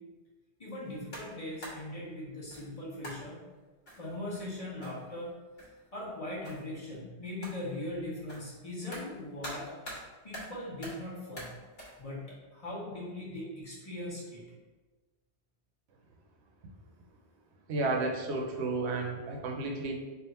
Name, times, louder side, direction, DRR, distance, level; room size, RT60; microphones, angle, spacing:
voice 1, 0.6-3.4 3.9-5.3 5.9-9.7 10.2-11.5 12.0-14.4, left 1 dB, 35° left, -7 dB, 1.1 m, -40 dB
sound 1, 0.9-1.9 2.5-2.7 3.0-3.3 3.9-5.3 5.6-5.9 6.4-6.8 7.4-7.7 8.3-10.1 10.3-11.1 11.4-12.0, equal, 60° left, 1.3 m, -46 dB
voice 2, 17.7-19.9, right 3 dB, 80° right, 2 dB, 0.9 m, -32 dB
3.5 x 2.4 x 4.1 m, 1.3 s
omnidirectional pair, 1.1 m